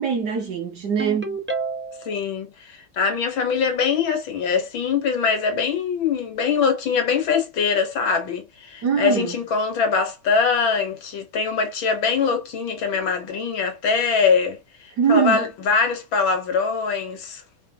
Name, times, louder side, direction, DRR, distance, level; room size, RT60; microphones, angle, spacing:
voice 1, 0.0-1.4 8.8-9.4 15.0-15.4, right 7 dB, 60° right, 1.2 m, -22 dB
Ringtone, 1.0-2.2, right 4 dB, 15° right, 0.4 m, -29 dB
voice 2, 2.0-17.4, left 5 dB, 65° left, 2.0 m, -23 dB
4.9 x 3.1 x 2.8 m
omnidirectional pair, 2.4 m